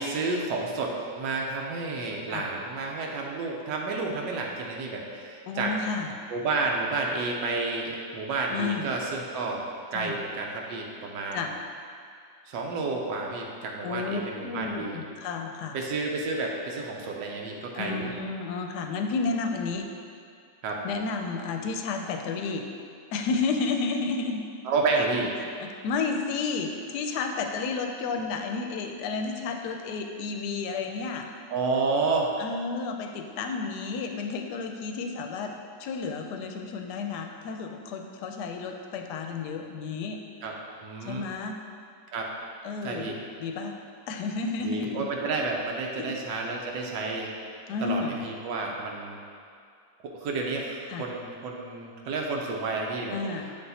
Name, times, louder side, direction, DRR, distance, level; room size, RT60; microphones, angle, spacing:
voice 1, 0.0-5.7 6.3-9.6 9.9-11.4 12.5-15.0 15.7-18.1 20.6-20.8 24.6-25.3 31.5-32.3 40.4-40.5 40.8-41.3 42.1-42.3 42.8-43.2 44.6-47.3 47.8-49.2 50.0-53.5, right 3 dB, 85° right, 0 dB, 1.3 m, -30 dB
voice 2, 5.5-6.1 8.5-8.9 9.9-10.1 11.3-11.5 13.8-15.8 17.8-19.9 20.8-22.7 23.1-24.4 25.6-31.3 32.4-35.5 35.8-40.2 41.0-41.6 42.6-43.7 44.1-45.1 46.0-46.1 47.7-48.2 50.9-51.1 53.1-53.6, left 4 dB, 75° left, 4 dB, 1.1 m, -31 dB
6.9 x 3.5 x 4.0 m, 2.3 s
omnidirectional pair, 1.9 m